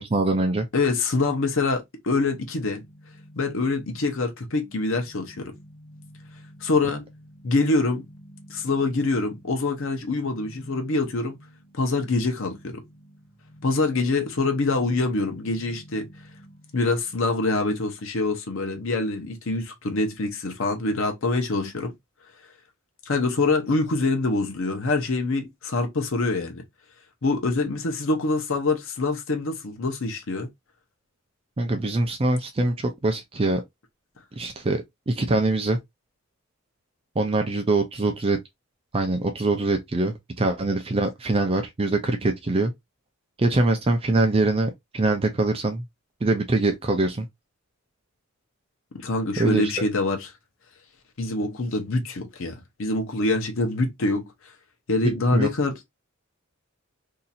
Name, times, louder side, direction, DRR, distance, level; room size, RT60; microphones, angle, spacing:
voice 1, 0.0-0.7 31.6-33.6 34.4-35.8 37.2-38.4 38.9-42.7 43.4-45.8 46.2-47.3 49.4-49.7 55.0-55.5, right 2 dB, 30° right, 0.5 m, -23 dB
voice 2, 0.7-2.9 3.4-5.5 6.6-7.1 7.4-8.0 8.5-11.4 11.7-12.8 13.6-16.1 16.7-21.9 23.1-26.6 27.2-30.5 48.9-50.3 51.2-54.3 54.9-55.9, left 3 dB, 70° left, 0.8 m, -25 dB
sound 1, 2.4-17.2, equal, 35° left, 1.5 m, -50 dB
2.8 x 2.4 x 4.1 m
head